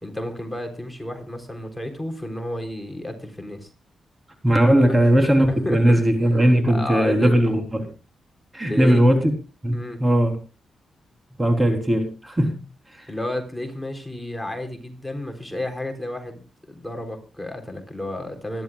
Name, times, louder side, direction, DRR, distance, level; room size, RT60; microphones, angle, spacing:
voice 1, 0.0-3.7 4.9-5.0 5.5-6.0 6.7-7.3 8.7-9.0 9.7-10.0 13.1-16.4 16.7-18.6, left 1 dB, 5° left, 4 dB, 3.8 m, -31 dB
voice 2, 4.4-7.9 8.5-9.3 9.6-10.4 11.4-12.6 12.9-13.1, equal, 20° right, 4 dB, 3.7 m, -18 dB
25.0 x 12.0 x 2.4 m, 0.32 s
cardioid pair, 75°, 0 cm